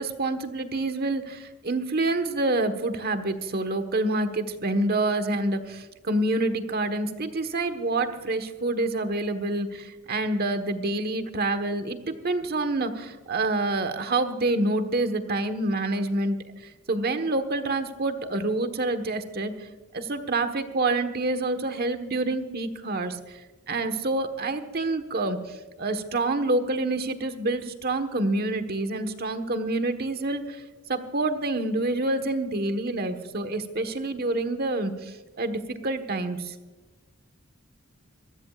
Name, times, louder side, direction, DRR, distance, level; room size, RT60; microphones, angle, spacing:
voice 1, 0.0-16.4 16.9-19.5 19.9-23.4 23.7-30.6 30.9-36.5, right 2 dB, 50° right, 8 dB, 1.4 m, -27 dB
25.5 x 15.5 x 2.5 m, 1.2 s
head